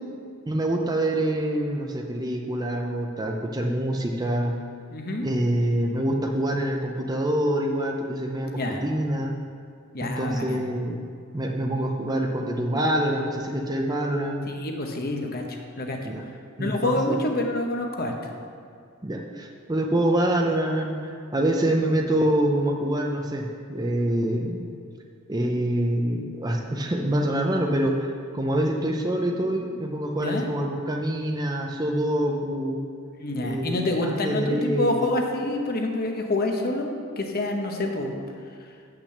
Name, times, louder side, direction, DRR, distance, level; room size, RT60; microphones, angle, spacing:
voice 1, 0.5-4.5 5.2-9.3 10.0-11.0 11.3-14.5 16.0-16.2 16.6-17.2 19.0-24.7 25.3-27.9 28.3-32.8 33.4-35.0, right 1 dB, 15° right, 2 dB, 0.6 m, -26 dB
voice 2, 4.9-5.3 8.4-8.8 9.9-10.6 14.5-16.0 16.6-18.1 30.2-30.5 33.2-38.1, left 2 dB, 45° left, 2 dB, 1.0 m, -27 dB
8.4 x 6.0 x 6.6 m, 2.2 s
head